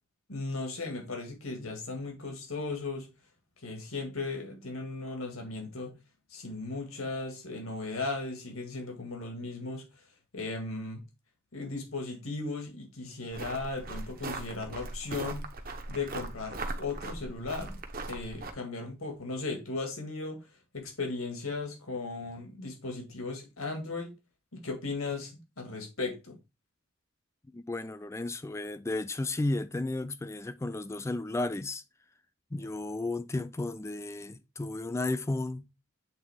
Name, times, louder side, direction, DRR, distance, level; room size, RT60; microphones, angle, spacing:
voice 1, 0.3-3.1 3.6-5.9 6.3-9.8 10.3-11.0 11.5-15.5 15.9-17.8 18.1-20.5 20.7-24.1 24.5-26.4, left 3 dB, 80° left, 1.8 m, -36 dB
sound 1, 13.3-18.5, right 2 dB, 45° right, 0.9 m, -39 dB
voice 2, 27.5-31.8 32.5-35.7, left 2 dB, 15° left, 0.3 m, -33 dB
8.1 x 3.6 x 3.5 m
head